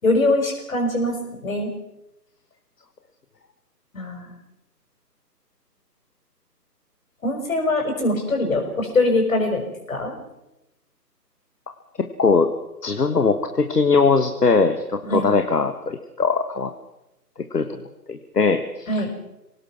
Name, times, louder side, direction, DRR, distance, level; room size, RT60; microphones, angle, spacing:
voice 1, 0.0-1.2 1.4-1.7 3.9-4.3 7.2-9.6 9.9-10.2 15.0-15.3 18.9-19.1, left 2 dB, 55° left, 3 dB, 6.3 m, -22 dB
voice 2, 12.0-12.5 12.8-16.7 17.5-17.8 18.1-18.9, left 4 dB, 70° left, 8 dB, 1.6 m, -20 dB
26.0 x 18.5 x 6.0 m, 0.91 s
figure-of-eight pair, 150°, 49 cm